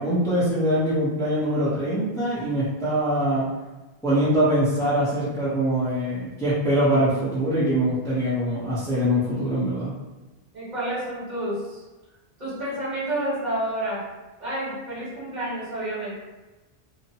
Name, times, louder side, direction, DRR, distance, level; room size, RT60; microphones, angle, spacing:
voice 1, 0.0-3.4 4.0-9.9, equal, 5° left, -10 dB, 0.6 m, -23 dB
voice 2, 10.5-11.8 12.4-14.0 14.4-16.1, right 1 dB, 45° right, -10 dB, 1.4 m, -29 dB
2.6 x 2.1 x 2.7 m, 1.1 s
omnidirectional pair, 1.1 m